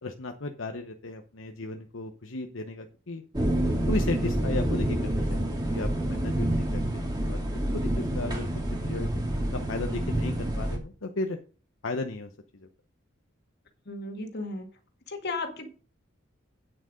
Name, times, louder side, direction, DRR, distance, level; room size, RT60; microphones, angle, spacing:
voice 1, 0.0-3.2 3.9-7.4 7.7-8.5 8.8-9.1 9.5-11.4 11.8-12.7, left 2 dB, 80° left, 0.9 m, -35 dB
sound 1, 3.3-10.8, right 1 dB, 20° right, 2.4 m, -28 dB
voice 2, 13.9-14.7 15.1-15.7, left 3 dB, 60° left, 2.0 m, -34 dB
9.1 x 7.6 x 5.1 m
head